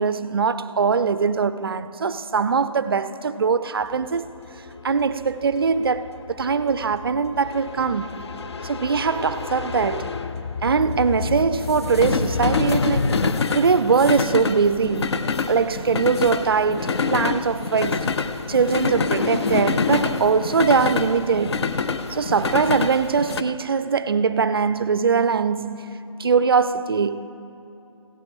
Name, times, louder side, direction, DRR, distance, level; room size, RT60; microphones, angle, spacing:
voice 1, 0.0-4.3 4.8-8.3 8.6-10.1 10.6-13.2 13.5-18.1 18.5-21.7 22.1-27.3, right 5 dB, 45° right, 0.4 m, -22 dB
sound 1, 3.9-23.4, left 4 dB, 50° left, 0.5 m, -26 dB
16.5 x 13.0 x 3.4 m
figure-of-eight pair, 155°, 18 cm